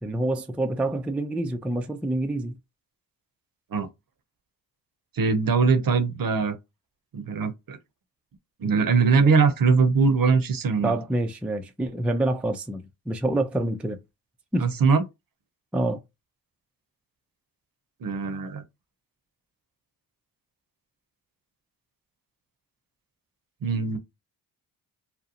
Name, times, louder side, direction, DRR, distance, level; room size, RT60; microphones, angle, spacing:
voice 1, 0.0-2.5 10.8-14.0 14.5-14.7 15.7-16.0, right 1 dB, 5° right, 0.4 m, -27 dB
voice 2, 5.2-6.6 7.1-7.8 8.6-10.9 14.6-15.0 18.0-18.6 23.6-24.0, right 5 dB, 45° right, 0.7 m, -21 dB
2.6 x 2.1 x 2.7 m
supercardioid pair, 45°, 47 cm